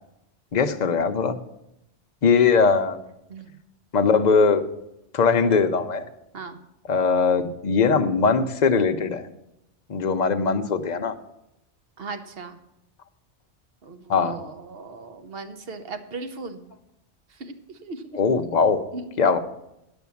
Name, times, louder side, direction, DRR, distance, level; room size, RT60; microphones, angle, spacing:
voice 1, 0.5-1.4 2.2-3.0 3.9-4.7 5.1-6.1 6.9-9.3 9.9-11.1 14.1-14.4 18.1-18.8 19.2-19.4, left 5 dB, 45° left, 7 dB, 0.7 m, -20 dB
voice 2, 12.0-12.6 13.8-16.6 17.3-18.2 18.9-19.1, right 3 dB, 55° right, 8 dB, 1.1 m, -37 dB
10.0 x 6.2 x 7.0 m, 0.84 s
omnidirectional pair, 1.2 m